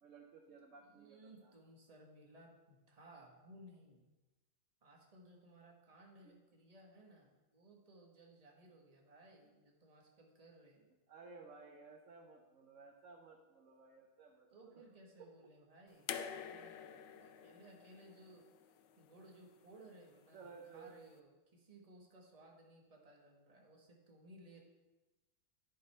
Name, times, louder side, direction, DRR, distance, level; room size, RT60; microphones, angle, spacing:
voice 1, 0.0-1.5 6.2-6.3 11.1-14.8 15.2-15.3 16.1-16.3 20.3-20.9, right 4 dB, 70° right, 1 dB, 0.7 m, -57 dB
voice 2, 0.8-4.0 4.8-10.9 14.5-18.5 19.0-24.6, right 1 dB, 25° right, 0 dB, 1.1 m, -60 dB
sound 1, 16.1-19.2 20.4-20.5, left 8 dB, 75° left, 1.1 m, -47 dB
11.0 x 5.1 x 4.3 m, 1.1 s
omnidirectional pair, 2.2 m